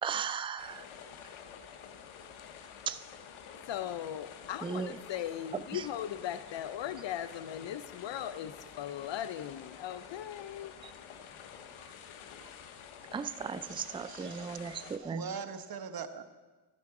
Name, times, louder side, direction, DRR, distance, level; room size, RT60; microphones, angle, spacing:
voice 1, 0.0-0.8 2.9-3.0 4.6-5.0 5.7-5.8 13.1-15.3, right 6 dB, 10° right, 13 dB, 0.3 m, -36 dB
sound 1, 0.6-15.0, left 7 dB, 85° left, 1.0 m, -49 dB
voice 2, 3.7-10.7, left 11 dB, 65° left, 14 dB, 0.6 m, -38 dB
voice 3, 13.6-16.2, right 6 dB, 50° right, 9 dB, 1.1 m, -42 dB
11.5 x 11.0 x 4.8 m, 1.2 s
cardioid pair, 80°, 47 cm